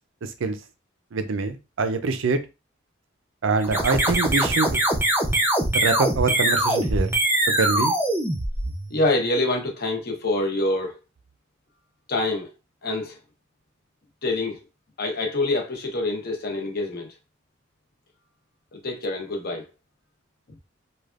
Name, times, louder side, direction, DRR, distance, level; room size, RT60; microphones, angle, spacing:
voice 1, 1.1-2.4 3.4-4.8 5.7-7.1 7.6-7.9, right 4 dB, 80° right, 0.5 m, -24 dB
sound 1, 3.6-9.1, right 1 dB, 10° right, 0.5 m, -23 dB
voice 2, 8.9-11.0 12.1-12.5 12.8-13.2 14.2-14.6 15.0-17.1 18.7-19.7, left 2 dB, 50° left, 0.8 m, -26 dB
3.3 x 2.3 x 2.4 m
head